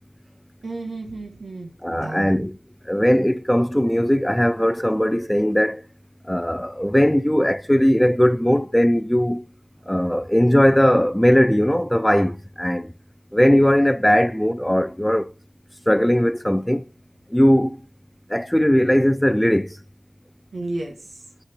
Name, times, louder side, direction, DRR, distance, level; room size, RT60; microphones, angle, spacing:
voice 1, 0.6-2.4 20.5-21.2, right 2 dB, 85° right, 1.5 m, -33 dB
voice 2, 1.8-2.5 2.9-5.8 6.3-9.4 9.9-12.3 12.6-12.8 13.3-15.2 15.9-16.8 17.3-17.8 18.3-19.7, equal, 5° left, 0.4 m, -18 dB
11.5 x 4.3 x 5.0 m
wide cardioid pair, 75°, 0 cm